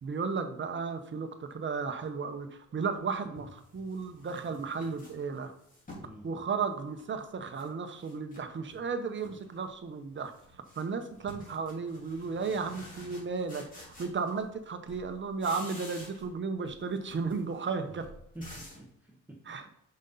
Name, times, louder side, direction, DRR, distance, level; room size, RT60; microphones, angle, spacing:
voice 1, 0.0-5.5 6.2-10.3 10.7-18.1 19.5-19.7, right 5 dB, 40° right, 8 dB, 1.0 m, -34 dB
sound 1, 2.7-2.8 3.3-6.2 6.6-7.7 8.0-8.8 9.1-9.6 9.9-14.6 14.9-16.4 16.6-18.9, left 1 dB, 25° left, 2.8 m, -50 dB
voice 2, 6.0-6.3 18.3-19.7, right 1 dB, 5° right, -1 dB, 1.1 m, -48 dB
6.3 x 5.4 x 3.9 m, 0.75 s
cardioid pair, 90°, 30 cm